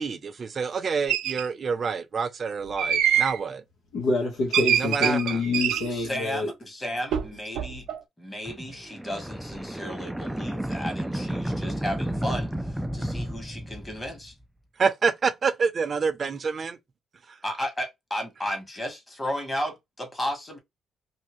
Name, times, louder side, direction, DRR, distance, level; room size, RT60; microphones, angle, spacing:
voice 1, 0.0-3.6 4.8-5.4 14.8-16.8, right 5 dB, 45° right, 0.6 m, -27 dB
sound 1, 1.1-1.4 2.8-3.4 4.5-5.9 7.1-7.3 7.6-8.0, right 9 dB, 90° right, 0.5 m, -25 dB
voice 2, 3.9-6.5, left 3 dB, 85° left, 1.3 m, -26 dB
voice 3, 5.9-7.9 8.2-14.3 17.4-20.6, equal, 20° left, 1.3 m, -34 dB
sound 2, 8.4-14.3, right 1 dB, 5° right, 0.3 m, -32 dB
2.7 x 2.6 x 3.1 m
cardioid pair, 90°, 0 cm